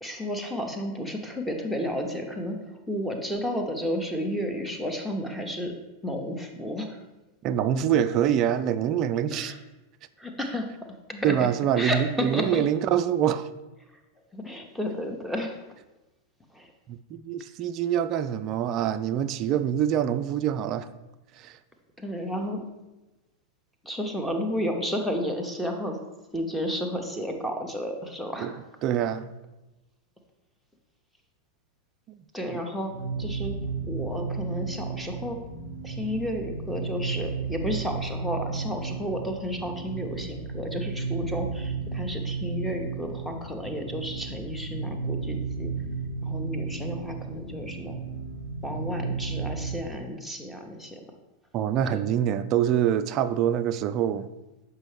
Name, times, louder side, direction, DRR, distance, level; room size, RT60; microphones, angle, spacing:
voice 1, 0.0-5.7 6.0-7.0 9.3-9.6 10.2-11.5 11.8-12.6 14.3-15.6 16.5-16.7 22.0-22.6 23.8-26.0 26.3-28.6 32.3-32.9 33.2-33.6 33.9-35.4 35.8-45.7 46.2-48.0 48.6-51.0 51.9-52.0, equal, 5° left, 0.9 m, -32 dB
voice 2, 7.4-9.5 11.2-13.5 16.9-20.9 21.4-21.6 28.4-28.5 28.8-29.3 32.1-32.2 32.5-32.6 51.5-54.3, right 10 dB, 35° right, 0.3 m, -25 dB
sound 1, 32.8-49.8, right 4 dB, 85° left, 1.5 m, -33 dB
7.3 x 4.7 x 3.3 m
figure-of-eight pair, 90°, 0 cm